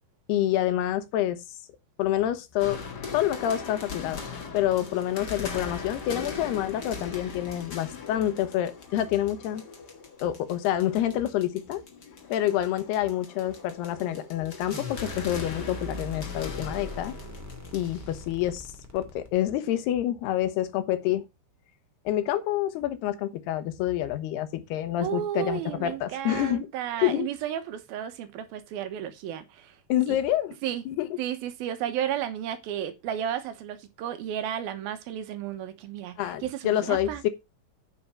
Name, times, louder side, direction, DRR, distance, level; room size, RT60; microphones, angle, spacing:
voice 1, 0.3-1.4 2.0-2.8 3.1-4.2 4.5-9.6 10.2-11.8 12.3-17.2 17.7-18.7 18.9-21.2 22.1-26.7 27.0-27.3 29.9-30.6 30.9-31.1 36.2-37.3, left 12 dB, 85° left, 3.1 m, -27 dB
sound 1, 2.6-18.3, left 5 dB, 40° left, 1.6 m, -40 dB
sound 2, 14.7-19.7, left 1 dB, 5° right, 1.3 m, -40 dB
voice 2, 25.0-29.8 30.1-30.2 30.6-30.8 31.2-37.2, right 10 dB, 75° right, 2.9 m, -33 dB
9.5 x 6.0 x 5.4 m
omnidirectional pair, 4.5 m